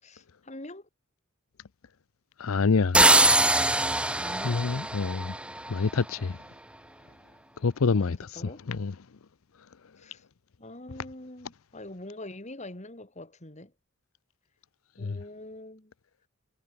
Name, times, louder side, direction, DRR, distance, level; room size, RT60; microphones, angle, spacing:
voice 1, 0.0-0.9 4.1-4.6 7.9-8.6 10.0-10.2 10.6-13.7 15.0-15.9, left 1 dB, 35° left, 3.4 m, -44 dB
voice 2, 2.4-3.3 4.4-5.4 5.7-6.4 7.6-8.4 8.7-8.9 15.0-15.2, left 4 dB, 80° left, 0.6 m, -27 dB
sound 1, 2.9-5.8, right 2 dB, 5° right, 0.9 m, -22 dB
head